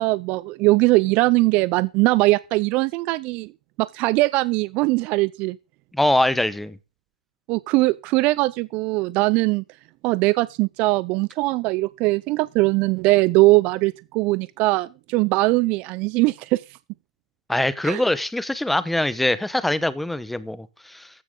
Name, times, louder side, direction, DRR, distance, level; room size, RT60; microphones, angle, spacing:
voice 1, 0.0-3.5 3.8-5.6 7.5-9.6 10.0-16.6 17.8-18.0, right 21 dB, 35° right, 0.5 m, -20 dB
voice 2, 5.9-6.8 17.5-21.1, left 1 dB, 5° left, 0.9 m, -23 dB
15.0 x 10.0 x 3.8 m
hypercardioid pair, 125°, 4 cm